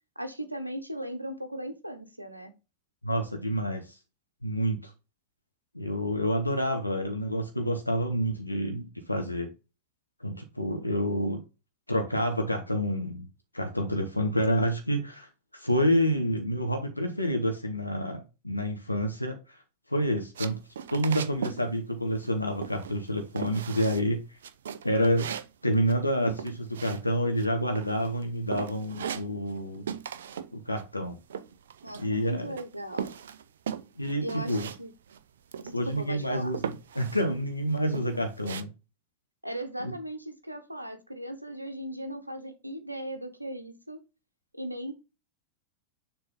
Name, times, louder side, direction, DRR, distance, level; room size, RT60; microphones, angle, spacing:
voice 1, 0.2-2.5 31.8-33.1 34.2-34.9 35.6-36.5 39.4-44.0 44.5-45.0, right 1 dB, 85° right, 1.0 m, -38 dB
voice 2, 3.0-4.0 4.4-4.9 5.7-9.5 10.2-11.4 11.9-13.3 13.5-19.6 19.9-20.6 20.9-24.2 24.8-25.3 25.6-29.9 30.5-31.2 31.9-32.5 34.0-34.7 35.7-38.7 39.8-39.9, equal, 85° left, 0.9 m, -28 dB
sound 1, 20.3-21.6 21.9-22.3 22.6-23.1 23.4-24.1 24.4-27.5 27.7-28.2 28.5-29.6 29.9-30.5 30.8-32.2 32.6-34.8 35.1-35.2 35.5-36.1 36.5-37.3 37.7-38.6, right 8 dB, 65° right, 0.5 m, -38 dB
6.9 x 3.7 x 3.6 m
figure-of-eight pair, 90°, 0 cm